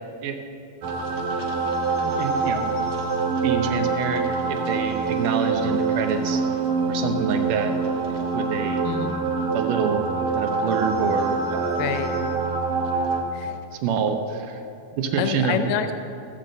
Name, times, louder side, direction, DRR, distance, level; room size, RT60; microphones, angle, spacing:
sound 1, 0.8-13.2, right 4 dB, 60° right, 1.5 m, -25 dB
voice 1, 2.0-2.7 3.4-6.4 6.9-7.7 8.1-8.8 9.5-10.0 10.3-11.8 13.5-14.6 14.9-15.9, right 6 dB, 75° right, 5 dB, 2.4 m, -27 dB
voice 2, 8.9-9.2 11.8-12.2 13.3-13.6 15.2-15.9, left 8 dB, 85° left, 9 dB, 2.3 m, -27 dB
15.0 x 5.3 x 7.6 m, 2.6 s
omnidirectional pair, 3.9 m